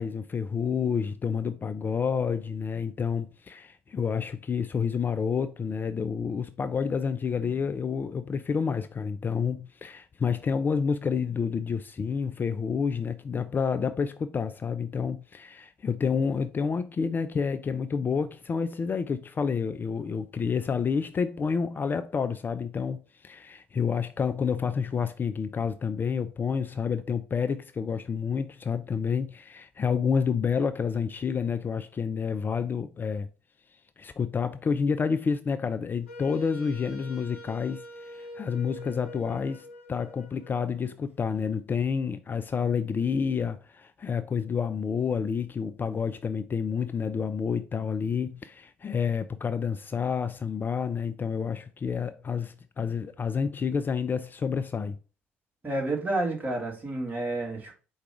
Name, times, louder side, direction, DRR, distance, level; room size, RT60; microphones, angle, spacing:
voice 1, 0.0-33.3 34.0-55.0, left 6 dB, 30° left, 0.3 m, -29 dB
Wind instrument woodwind instrument, 36.1-41.0, left 1 dB, 90° left, 0.6 m, -44 dB
voice 2, 55.6-57.7, right 2 dB, 25° right, 1.7 m, -30 dB
4.6 x 2.4 x 4.8 m
figure-of-eight pair, 50°, 6 cm